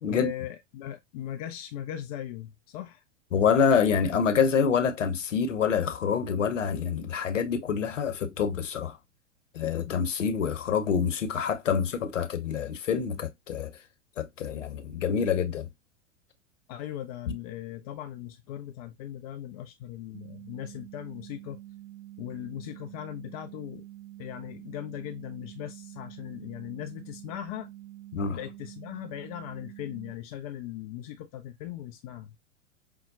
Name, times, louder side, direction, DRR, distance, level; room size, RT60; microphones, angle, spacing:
voice 1, 0.0-3.0 16.7-21.6 22.2-23.9 24.2-27.7 28.3-32.4, left 12 dB, 30° left, 0.4 m, -39 dB
voice 2, 3.3-9.0 9.5-13.8 14.2-15.7 28.1-28.4, left 6 dB, 75° left, 0.9 m, -26 dB
sound 1, 20.1-30.1, right 15 dB, 65° right, 0.6 m, -46 dB
5.4 x 2.1 x 2.4 m
figure-of-eight pair, 100°, 38 cm